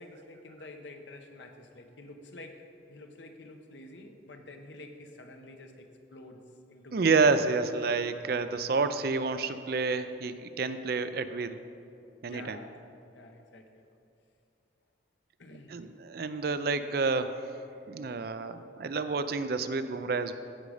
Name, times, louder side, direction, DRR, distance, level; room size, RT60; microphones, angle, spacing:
voice 1, 0.0-8.8 12.3-12.9 13.1-13.9 15.4-15.8, left 2 dB, 85° left, 5 dB, 0.9 m, -49 dB
voice 2, 6.9-11.6 12.2-12.6 15.7-17.3 17.9-20.3, right 4 dB, 55° right, 11 dB, 0.5 m, -29 dB
15.5 x 5.2 x 4.9 m, 2.6 s
head